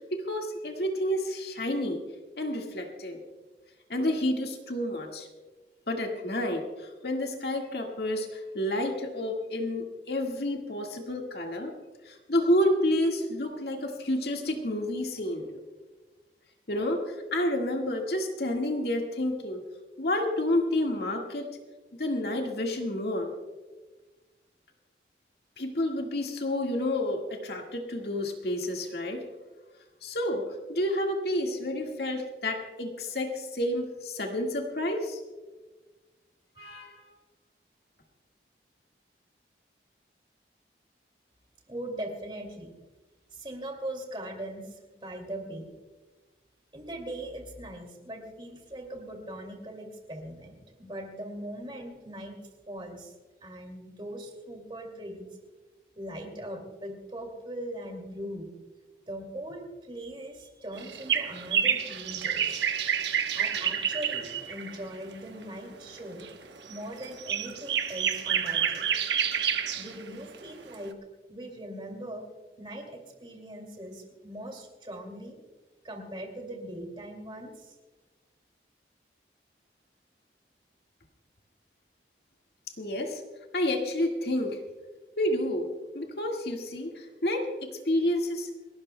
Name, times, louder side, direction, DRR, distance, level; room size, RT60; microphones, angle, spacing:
voice 1, 0.0-2.0 2.4-3.2 3.9-5.3 5.9-11.7 12.0-15.5 16.7-19.6 20.0-21.5 22.0-23.3 25.6-29.2 30.0-30.4 30.7-35.2 36.6-37.0 82.8-83.2 83.5-84.6 85.2-85.7 85.9-88.5, left 1 dB, 65° left, 2 dB, 1.8 m, -29 dB
voice 2, 41.7-42.7 43.3-45.7 46.7-52.4 52.7-53.1 53.4-55.3 56.0-58.5 59.1-62.6 63.3-66.3 66.7-68.9 69.8-70.9 71.3-72.3 72.6-75.4 75.8-77.7, right 1 dB, 30° right, 2 dB, 2.4 m, -40 dB
sound 1, 60.7-64.8 66.0-66.3 66.7-70.1 70.3-70.4 70.7-70.8, right 8 dB, 85° right, 1.1 m, -29 dB
29.5 x 12.5 x 2.2 m, 1.3 s
head